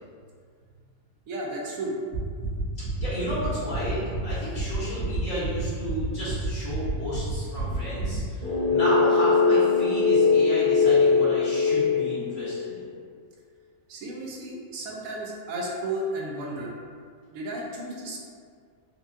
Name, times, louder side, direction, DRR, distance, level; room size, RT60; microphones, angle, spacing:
voice 1, 1.3-2.0 13.9-16.7 17.3-18.3, right 1 dB, 75° right, -2 dB, 1.0 m, -33 dB
sound 1, 2.1-8.2, right 2 dB, 85° left, 1.5 m, -31 dB
voice 2, 2.8-12.9, equal, 65° left, -14 dB, 1.6 m, -32 dB
sound 2, 8.4-12.6, left 4 dB, 35° left, 1.1 m, -21 dB
4.3 x 2.3 x 2.6 m, 2.1 s
omnidirectional pair, 1.5 m